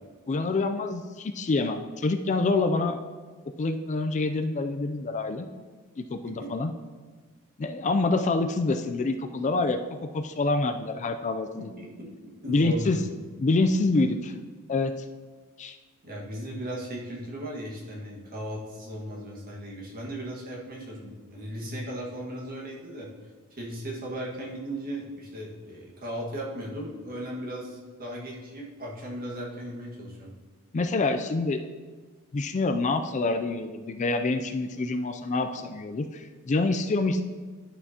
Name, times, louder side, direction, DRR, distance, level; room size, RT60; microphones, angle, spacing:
voice 1, 0.3-3.0 3.6-5.5 6.0-6.7 7.6-9.8 10.1-11.7 12.5-13.0 13.4-14.3 14.7-14.9 15.6-15.8 30.7-31.6 32.3-37.2, left 3 dB, 35° left, 7 dB, 0.4 m, -26 dB
voice 2, 11.6-12.1 12.4-13.0 16.0-23.1 23.5-30.3, right 1 dB, 45° right, -3 dB, 1.7 m, -37 dB
11.0 x 6.7 x 2.8 m, 1.5 s
head